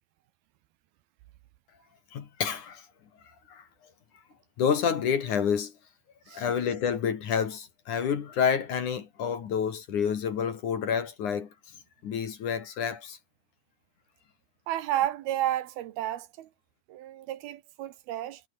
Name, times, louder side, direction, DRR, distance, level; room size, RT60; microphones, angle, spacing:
voice 1, 2.1-2.9 3.2-3.9 4.6-5.8 6.3-11.8 12.0-13.2, left 7 dB, 55° left, 3.2 m, -29 dB
voice 2, 14.7-16.5 16.9-18.4, right 13 dB, 70° right, 2.8 m, -31 dB
omnidirectional pair, 4.8 m